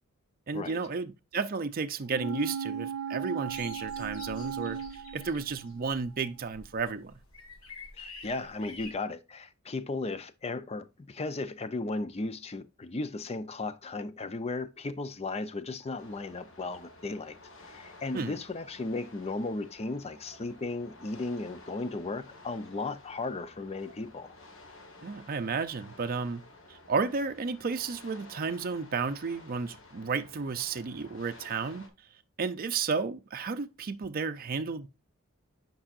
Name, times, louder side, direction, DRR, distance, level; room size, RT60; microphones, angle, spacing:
voice 1, 0.5-7.1 18.1-18.4 25.0-31.9 32.4-34.9, right 4 dB, 45° right, 0.5 m, -33 dB
sound 1, 2.1-5.9 6.2-6.3, right 6 dB, 90° right, 0.6 m, -37 dB
sound 2, 3.5-8.9, left 3 dB, 85° left, 1.6 m, -49 dB
voice 2, 8.0-24.3, left 3 dB, 30° left, 0.6 m, -36 dB
sound 3, 16.0-31.9, left 2 dB, 65° left, 1.4 m, -53 dB
8.7 x 5.4 x 2.4 m
head